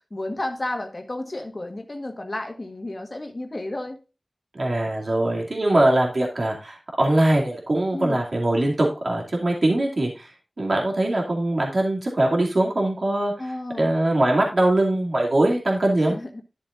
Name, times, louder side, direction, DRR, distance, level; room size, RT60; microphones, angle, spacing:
voice 1, 0.1-4.0 7.9-8.2 13.4-13.9 16.0-16.3, left 1 dB, 45° left, 4 dB, 1.5 m, -32 dB
voice 2, 4.5-10.3 10.6-13.3 13.8-16.2, right 1 dB, 65° right, -1 dB, 2.6 m, -22 dB
12.0 x 7.2 x 2.6 m, 0.30 s
cardioid pair, 45°, 0 cm